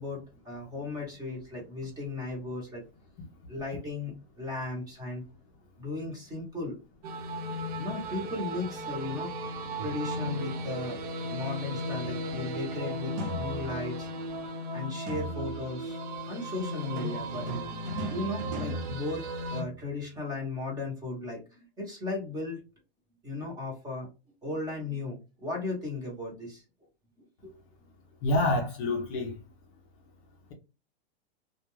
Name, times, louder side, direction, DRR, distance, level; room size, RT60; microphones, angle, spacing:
voice 1, 0.0-2.8 3.5-5.3 5.8-6.8 7.8-9.3 9.8-11.0 11.3-14.1 14.7-17.5 18.0-19.2 19.5-22.6 23.2-24.1 24.4-26.6 27.4-27.5, left 2 dB, 10° right, 0.9 m, -36 dB
sound 1, 7.0-19.6, equal, 40° right, 0.4 m, -36 dB
sound 2, 9.8-10.5 13.2-14.0 15.1-15.8 16.8-19.8, right 1 dB, 65° right, 0.9 m, -38 dB
voice 2, 28.2-29.4, left 1 dB, 35° left, 0.6 m, -27 dB
2.3 x 2.2 x 3.0 m
hypercardioid pair, 155°, 31 cm